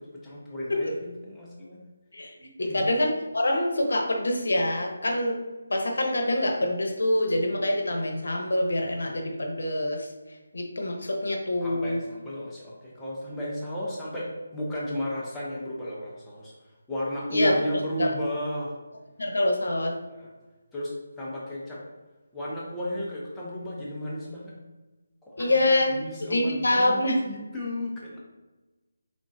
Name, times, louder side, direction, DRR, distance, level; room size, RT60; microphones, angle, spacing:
voice 1, 0.0-1.8 2.6-2.9 11.6-16.5 16.9-18.8 20.1-20.3 20.7-21.8 22.3-24.5 25.2-28.2, equal, 5° left, -8 dB, 0.6 m, -34 dB
voice 2, 2.6-5.4 5.7-10.1 10.5-12.0 17.3-17.5 18.0-18.1 19.2-19.9 25.4-25.9 26.3-27.2, left 1 dB, 80° left, 2 dB, 0.8 m, -25 dB
3.7 x 3.7 x 2.5 m, 1.2 s
figure-of-eight pair, 165°, 0 cm